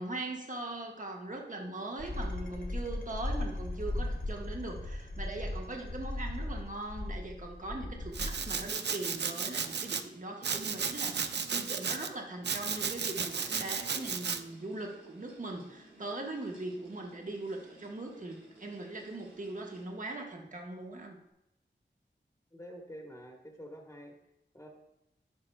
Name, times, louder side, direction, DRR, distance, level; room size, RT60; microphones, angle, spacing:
voice 1, 0.0-21.2, right 2 dB, 40° right, 1 dB, 1.1 m, -40 dB
sound 1, 2.0-8.7, left 1 dB, 45° left, 1.0 m, -37 dB
Domestic sounds home sounds, 8.1-10.0 10.4-12.1 12.4-14.4, right 6 dB, 60° right, 0.4 m, -34 dB
sound 2, 8.2-20.3, right 1 dB, 80° right, 2.1 m, -59 dB
voice 2, 22.5-24.1 24.5-24.7, equal, 15° left, 1 dB, 1.1 m, -47 dB
10.0 x 5.1 x 2.2 m, 0.86 s
cardioid pair, 45°, 20 cm